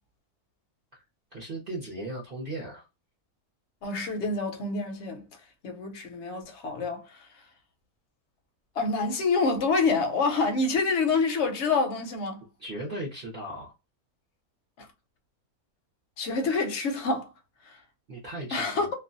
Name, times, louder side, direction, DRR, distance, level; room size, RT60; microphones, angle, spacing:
voice 1, 1.3-2.9 12.6-13.7 18.1-18.9, right 1 dB, 50° right, 0.7 m, -37 dB
voice 2, 3.8-5.2 5.6-7.3 8.8-12.4 14.8-14.9 16.2-17.3 17.6-17.8 18.5-18.9, left 4 dB, 60° left, 0.8 m, -27 dB
2.5 x 2.2 x 2.5 m
omnidirectional pair, 1.6 m